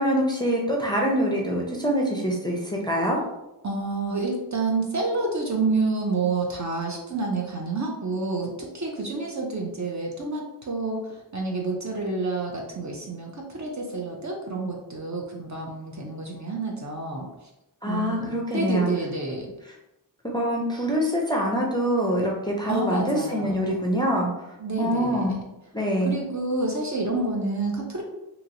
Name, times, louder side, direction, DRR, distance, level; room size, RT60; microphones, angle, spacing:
voice 1, 0.0-3.2 17.8-18.9 20.3-24.3 24.8-25.4 25.7-26.2, equal, 10° left, -2 dB, 0.5 m, -24 dB
voice 2, 3.6-17.3 17.8-19.5 22.7-23.9 24.6-25.4 26.0-28.0, right 3 dB, 40° right, 0 dB, 0.6 m, -29 dB
3.0 x 2.8 x 2.6 m, 0.93 s
wide cardioid pair, 85°, 46 cm